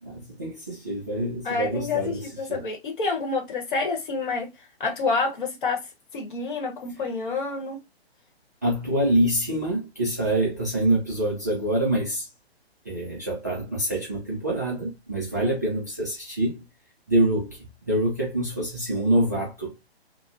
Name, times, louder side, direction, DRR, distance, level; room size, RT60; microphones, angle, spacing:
voice 1, 0.0-2.6 8.6-12.3 12.9-16.6 17.1-17.6 17.9-19.8, right 1 dB, 20° right, 0.3 m, -25 dB
voice 2, 1.4-4.5 4.8-5.8 6.1-7.8 15.4-15.6, left 4 dB, 50° left, 1.0 m, -28 dB
2.7 x 2.0 x 2.4 m
figure-of-eight pair, 130°, 32 cm